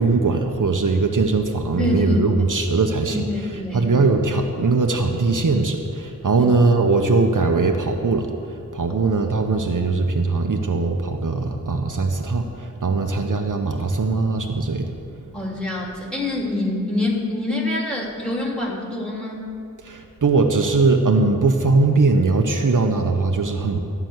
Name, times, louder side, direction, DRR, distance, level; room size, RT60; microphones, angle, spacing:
voice 1, 0.0-3.2 3.7-8.3 8.7-14.9 19.9-23.8, right 3 dB, 65° right, 3 dB, 0.9 m, -20 dB
voice 2, 1.8-2.2 3.1-3.9 6.4-6.5 8.9-9.0 15.3-19.4, left 2 dB, 5° left, -2 dB, 2.7 m, -25 dB
13.5 x 5.9 x 9.4 m, 2.4 s
wide cardioid pair, 75°, 33 cm